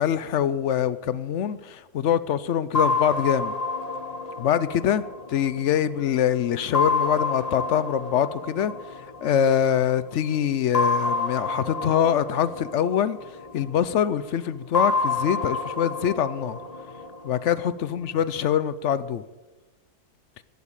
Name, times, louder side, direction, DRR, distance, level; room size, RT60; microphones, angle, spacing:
voice 1, 0.0-3.5 4.4-16.6 17.2-19.2, left 9 dB, 60° left, 16 dB, 0.8 m, -24 dB
sound 1, 2.7-6.1 6.7-9.7 10.7-13.9 14.7-17.9, left 3 dB, 30° left, 1.0 m, -28 dB
15.0 x 8.2 x 8.7 m, 1.1 s
omnidirectional pair, 1.6 m